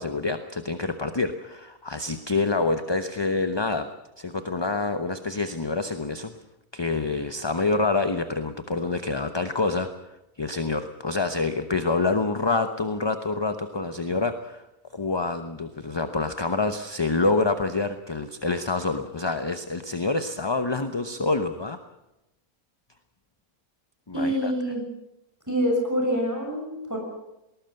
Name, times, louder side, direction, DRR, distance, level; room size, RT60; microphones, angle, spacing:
voice 1, 0.0-3.9 4.2-6.3 6.7-9.9 10.4-14.6 14.9-21.8 24.1-24.5, left 3 dB, 20° left, 9 dB, 0.8 m, -27 dB
voice 2, 24.1-24.8 25.5-27.0, equal, 10° right, 1 dB, 6.6 m, -26 dB
19.5 x 19.5 x 7.8 m, 0.91 s
omnidirectional pair, 1.5 m